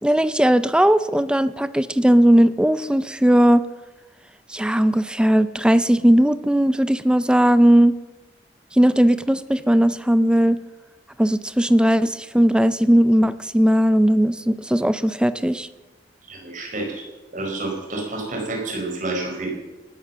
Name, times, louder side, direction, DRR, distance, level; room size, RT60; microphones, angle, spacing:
voice 1, 0.0-3.6 4.5-7.9 8.7-10.6 11.2-15.7, equal, 5° right, 14 dB, 0.4 m, -17 dB
voice 2, 16.3-16.9 17.3-19.5, right 2 dB, 45° right, 1 dB, 4.6 m, -29 dB
19.0 x 10.0 x 7.4 m, 1.2 s
head